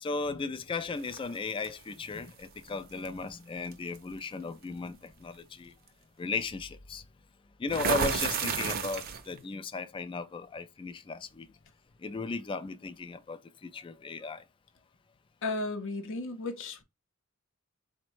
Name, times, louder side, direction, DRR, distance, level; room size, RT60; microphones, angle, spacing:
voice 1, 0.0-5.7 6.2-7.0 7.6-11.5 12.0-14.4, left 4 dB, 25° left, 0.3 m, -36 dB
sound 1, 1.1-1.7 3.0-3.2 3.7-4.0 7.7-9.4, right 5 dB, 45° right, 0.6 m, -31 dB
voice 2, 15.4-16.8, left 2 dB, 60° left, 0.6 m, -34 dB
4.0 x 2.2 x 4.5 m
head